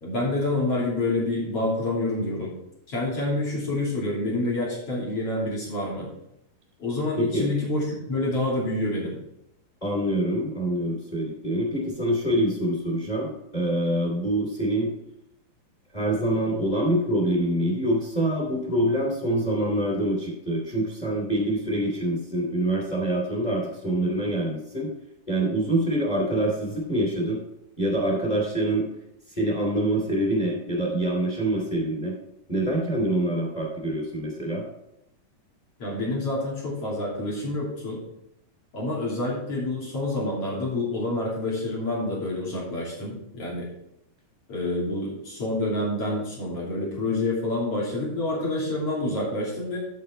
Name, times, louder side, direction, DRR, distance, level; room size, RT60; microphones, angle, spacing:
voice 1, 0.0-2.5 2.9-6.1 6.8-9.2 35.8-38.0 38.7-43.7 44.5-49.8, left 2 dB, 45° left, -5 dB, 3.9 m, -28 dB
voice 2, 7.2-7.5 9.8-14.9 15.9-24.9 25.3-27.4 27.8-28.9 29.3-32.1 32.5-34.6, right 1 dB, 15° left, 0 dB, 2.6 m, -25 dB
8.6 x 7.6 x 4.5 m, 0.81 s
omnidirectional pair, 3.9 m